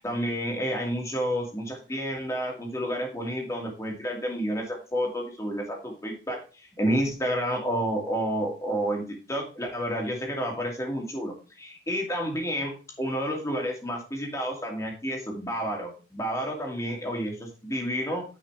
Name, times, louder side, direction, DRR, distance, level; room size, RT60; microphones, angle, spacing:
voice 1, 0.0-12.7 13.0-18.2, equal, 15° left, 0 dB, 2.4 m, -30 dB
10.0 x 5.6 x 3.5 m, 0.33 s
head